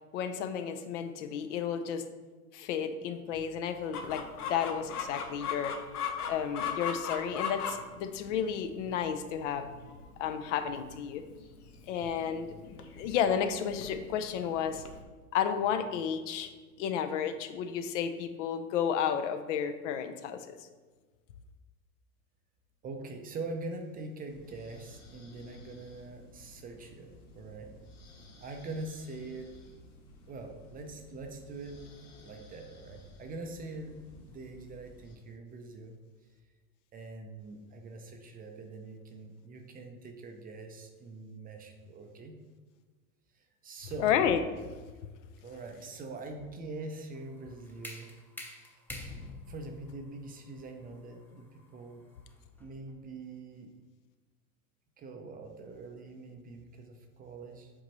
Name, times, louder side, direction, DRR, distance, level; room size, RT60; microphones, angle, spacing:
voice 1, 0.1-2.0 2.5-5.8 6.3-9.7 10.2-11.2 11.9-12.5 13.0-14.8 15.3-16.5 16.8-20.5 44.0-44.4 44.7-44.8, left 8 dB, 55° left, 8 dB, 0.7 m, -32 dB
Chicken rooster, 3.9-15.0, left 6 dB, 85° left, 0.9 m, -39 dB
voice 2, 22.8-27.7 28.4-29.5 30.3-31.8 32.2-35.9 36.9-42.4 43.3-44.1 45.4-48.1 48.7-48.8 49.5-52.0 52.6-53.7 55.0-57.7, right 3 dB, 20° right, 4 dB, 0.5 m, -43 dB
sound 1, 24.3-35.2, left 2 dB, 40° left, 1.6 m, -55 dB
sound 2, 47.1-52.9, left 1 dB, 5° left, 0.8 m, -48 dB
7.7 x 4.1 x 3.0 m, 1.3 s
hypercardioid pair, 100°, 44 cm